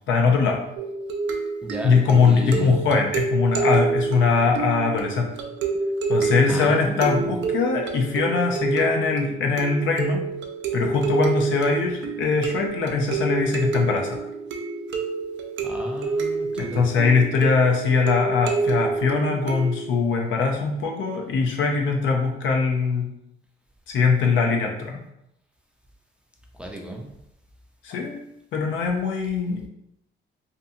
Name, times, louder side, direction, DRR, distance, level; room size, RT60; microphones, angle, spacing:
voice 1, 0.1-0.6 1.8-5.3 6.1-10.2 10.7-14.2 16.6-23.1 23.9-25.0 27.8-28.2 28.5-29.7, left 4 dB, 75° left, 1 dB, 0.6 m, -21 dB
sound 1, 0.8-20.0, right 4 dB, 70° right, 0.5 m, -28 dB
voice 2, 1.6-2.8 6.5-7.3 15.6-16.8 26.6-27.1, right 1 dB, 5° right, 0 dB, 0.5 m, -34 dB
2.7 x 2.3 x 2.6 m, 0.80 s
cardioid pair, 90°, 20 cm